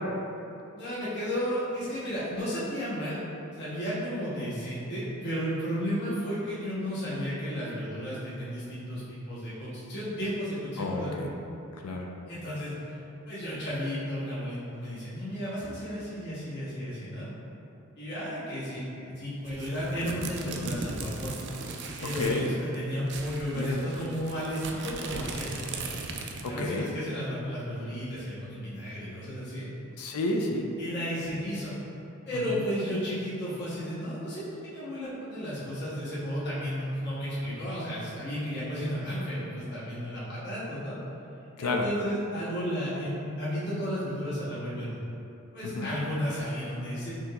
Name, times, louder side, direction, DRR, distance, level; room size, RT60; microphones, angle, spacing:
voice 1, 0.7-3.2 3.5-11.1 12.3-12.7 13.2-17.3 18.0-21.3 22.0-25.8 26.5-29.7 30.8-31.7 32.2-41.0 41.6-45.0 45.5-47.1, equal, 50° left, -10 dB, 1.1 m, -33 dB
voice 2, 10.8-11.3 11.7-12.1 22.2-22.5 23.5-23.8 26.4-26.9 30.0-30.7 32.3-32.7 41.6-41.8 45.6-46.0, left 2 dB, 90° left, 1 dB, 0.5 m, -31 dB
sound 1, 19.4-22.5 22.7-22.8 23.1-26.6, right 4 dB, 50° right, 0.4 m, -38 dB
6.0 x 2.9 x 2.3 m, 2.8 s
head